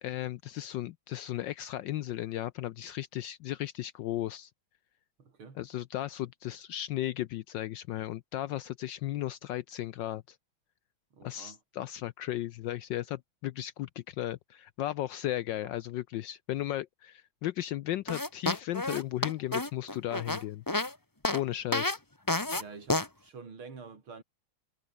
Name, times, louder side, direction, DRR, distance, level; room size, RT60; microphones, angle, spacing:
voice 1, 0.0-4.5 5.6-10.4 11.2-20.6 21.3-22.0, left 13 dB, 75° left, 1.1 m, -35 dB
voice 2, 5.2-5.6 11.1-11.6 22.5-24.2, right 4 dB, 70° right, 4.4 m, -48 dB
sound 1, 18.1-20.9 21.2-21.4 21.7-22.0 22.3-22.6 22.9-23.1, left 2 dB, 10° left, 1.1 m, -30 dB
omnidirectional pair, 2.4 m